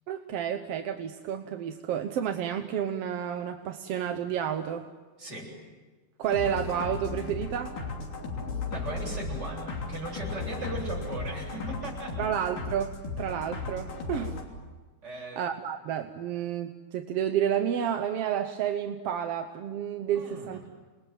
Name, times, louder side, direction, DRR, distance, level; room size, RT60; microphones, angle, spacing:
voice 1, 0.1-4.9 6.2-7.8 12.2-14.4 15.1-20.7, right 9 dB, 65° right, 6 dB, 1.7 m, -30 dB
voice 2, 5.2-5.5 8.7-12.2 15.0-15.4 20.1-20.6, right 1 dB, 30° right, -2 dB, 8.7 m, -38 dB
sound 1, 6.2-14.4, left 3 dB, 85° left, 4.8 m, -36 dB
29.0 x 21.0 x 9.3 m, 1.3 s
omnidirectional pair, 3.6 m